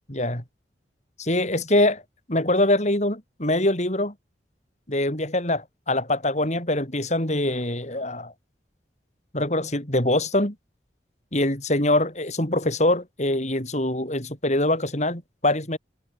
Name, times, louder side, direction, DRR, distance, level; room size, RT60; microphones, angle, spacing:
voice 1, 0.1-0.4 1.2-2.0 2.3-4.1 4.9-8.3 9.3-10.5 11.3-15.8, left 1 dB, 40° left, 6.0 m, -24 dB
head